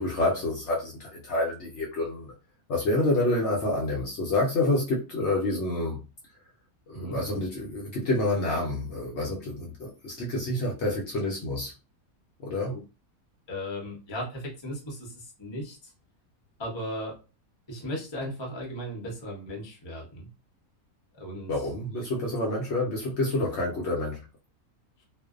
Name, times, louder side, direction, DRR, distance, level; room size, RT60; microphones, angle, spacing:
voice 1, 0.0-2.3 2.7-6.0 6.9-11.7 12.4-12.7 21.5-24.2, left 2 dB, 60° left, -2 dB, 0.8 m, -28 dB
voice 2, 13.5-15.9 16.6-17.1 17.7-20.3 21.1-21.5, equal, 25° left, -1 dB, 0.6 m, -36 dB
2.5 x 2.1 x 2.4 m, 0.31 s
omnidirectional pair, 1.5 m